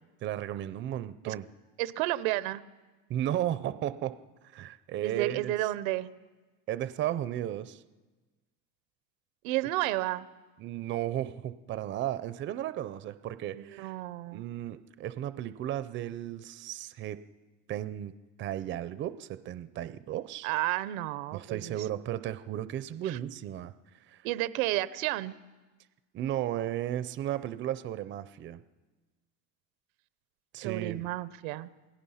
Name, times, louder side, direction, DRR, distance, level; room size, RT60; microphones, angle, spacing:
voice 1, 0.2-1.4 3.1-4.1 4.5-5.5 6.7-7.8 10.6-13.9 14.3-17.2 17.7-18.1 18.4-20.5 21.3-23.7 24.1-24.2 26.1-28.6 30.5-31.0, right 12 dB, 30° right, 13 dB, 0.5 m, -34 dB
voice 2, 1.8-2.6 5.0-6.1 9.4-10.3 13.5-14.4 20.4-21.8 23.0-23.2 24.2-25.3 30.6-31.7, right 17 dB, 90° right, 16 dB, 0.9 m, -31 dB
28.0 x 17.5 x 5.7 m, 1.3 s
cardioid pair, 155°, 40 cm